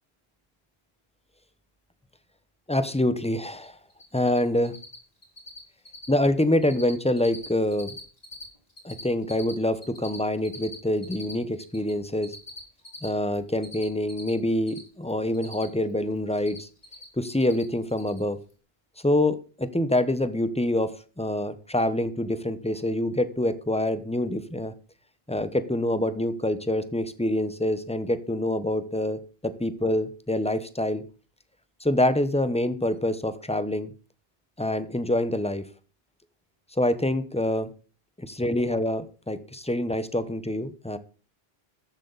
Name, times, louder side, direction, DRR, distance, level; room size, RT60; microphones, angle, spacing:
voice 1, 2.7-3.8 4.1-4.8 6.1-7.9 8.8-12.3 13.0-16.7 17.2-18.4 19.0-24.7 25.3-31.0 31.8-33.9 34.6-35.7 36.7-37.7 38.2-41.0, left 1 dB, 5° left, 12 dB, 0.9 m, -26 dB
Cricket, 3.5-3.7 3.9-4.4 4.6-5.0 5.2-5.6 5.8-6.2 6.4-6.9 7.2-8.4 8.7-11.9 12.2-14.8 15.1-15.9 16.2-17.0 17.3-17.6 17.9-18.2, left 2 dB, 35° left, 3.7 m, -42 dB
14.0 x 10.5 x 4.1 m, 0.36 s
omnidirectional pair, 1.1 m